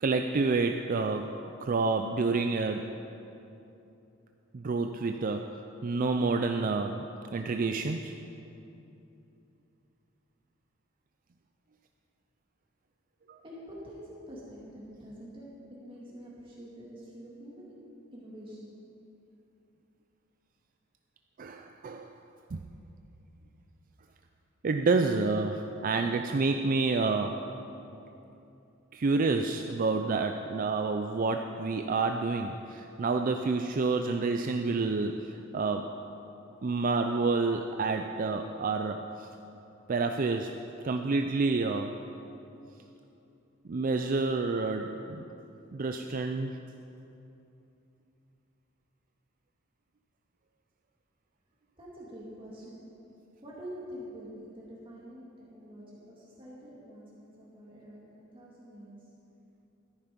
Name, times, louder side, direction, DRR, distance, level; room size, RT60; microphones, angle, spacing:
voice 1, 0.0-3.0 4.5-8.1 13.3-13.4 21.4-22.2 22.5-22.6 24.6-27.5 28.9-36.0 36.6-39.3 39.9-40.6 40.8-42.0 43.6-45.2 45.7-46.6, right 3 dB, 45° right, 5 dB, 0.4 m, -29 dB
voice 2, 13.4-15.5 15.8-17.7 18.1-18.8 51.8-52.8 53.4-59.0, equal, 25° right, -6 dB, 2.2 m, -46 dB
13.5 x 10.5 x 5.2 m, 2.8 s
head